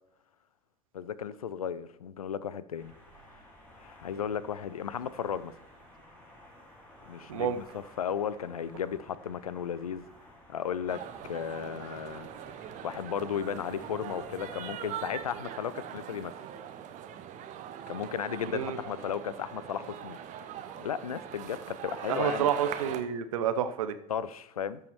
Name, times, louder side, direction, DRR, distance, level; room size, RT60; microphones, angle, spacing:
voice 1, 0.9-2.9 3.8-5.5 7.1-10.1 10.5-11.0 11.3-12.3 12.8-16.3 17.9-20.2 20.8-22.5 24.1-24.8, left 8 dB, 75° left, 17 dB, 0.5 m, -35 dB
sound 1, 2.8-15.3, left 1 dB, 10° left, 4.1 m, -55 dB
sound 2, 10.9-23.0, right 9 dB, 40° right, 0.9 m, -41 dB
voice 2, 22.1-23.9, right 9 dB, 65° right, 12 dB, 0.8 m, -29 dB
13.5 x 5.5 x 4.5 m, 0.80 s
figure-of-eight pair, 70°, 19 cm